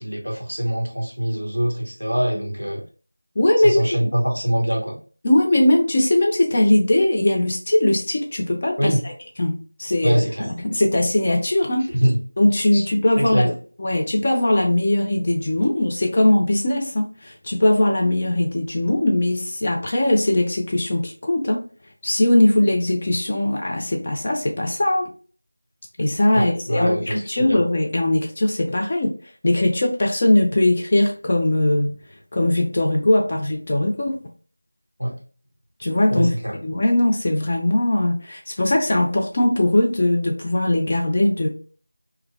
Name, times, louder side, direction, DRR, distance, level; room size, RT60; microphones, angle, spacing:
voice 1, 0.0-2.8 3.6-5.0 8.8-9.0 10.0-10.5 11.9-12.2 12.7-12.8 13.2-13.5 26.3-27.6 35.0-35.1 36.1-36.5, equal, 85° left, -1 dB, 1.0 m, -23 dB
voice 2, 3.4-4.0 5.2-9.1 9.4-11.9 12.4-13.5 13.8-21.6 22.0-25.1 26.0-29.1 29.4-32.0 32.3-34.2 35.8-41.5, left 1 dB, 25° left, 1 dB, 0.3 m, -20 dB
3.7 x 2.2 x 2.2 m, 0.40 s
figure-of-eight pair, 170°, 0 cm